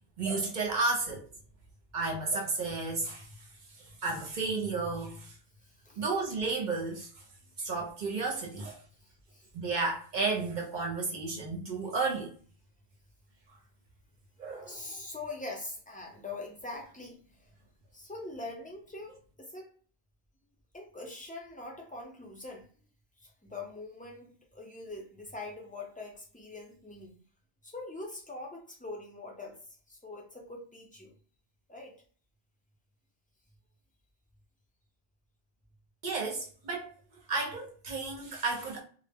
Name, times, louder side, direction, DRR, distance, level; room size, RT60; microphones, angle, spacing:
voice 1, 0.2-1.3 1.9-5.4 5.9-7.2 7.6-8.8 9.5-12.4 14.4-15.0 36.0-38.8, right 3 dB, 55° right, 0.7 m, -33 dB
voice 2, 9.0-9.5 14.7-17.5 17.9-19.7 20.7-22.7 23.2-27.1 27.6-29.6 29.9-31.2 31.7-32.0, left 2 dB, 10° left, 0.4 m, -43 dB
2.1 x 2.0 x 3.4 m
omnidirectional pair, 1.1 m